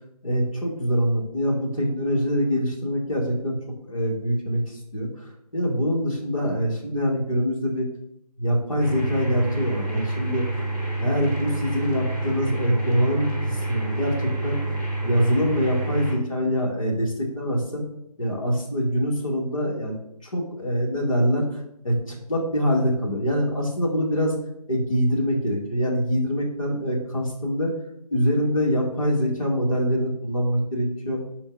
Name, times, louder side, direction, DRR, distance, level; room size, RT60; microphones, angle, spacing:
voice 1, 0.2-3.6 3.8-5.3 5.5-7.9 8.4-10.5 11.0-14.6 15.0-17.8 18.2-20.0 20.2-21.4 21.8-24.3 24.7-27.7 28.1-31.2, equal, 55° left, -2 dB, 2.0 m, -24 dB
sound 1, 8.8-16.1, right 2 dB, 15° left, 1.5 m, -28 dB
5.8 x 4.4 x 3.9 m, 0.77 s
figure-of-eight pair, 165°, 20 cm